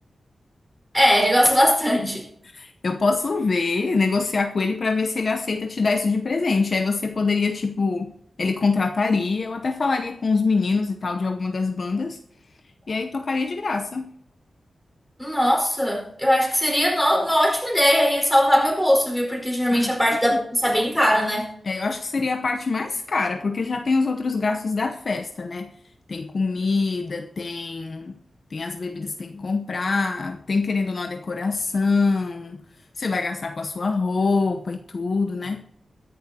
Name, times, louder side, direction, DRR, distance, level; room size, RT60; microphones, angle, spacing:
voice 1, 0.9-2.3 15.2-21.5, equal, ahead, 4.7 m, -20 dB
voice 2, 2.5-12.2 12.9-14.1 19.7-20.0 21.6-25.8 26.1-28.2 28.5-32.6 33.0-35.7, left 4 dB, 45° left, 0.8 m, -24 dB
22.0 x 10.5 x 2.8 m
wide cardioid pair, 140°, 0 cm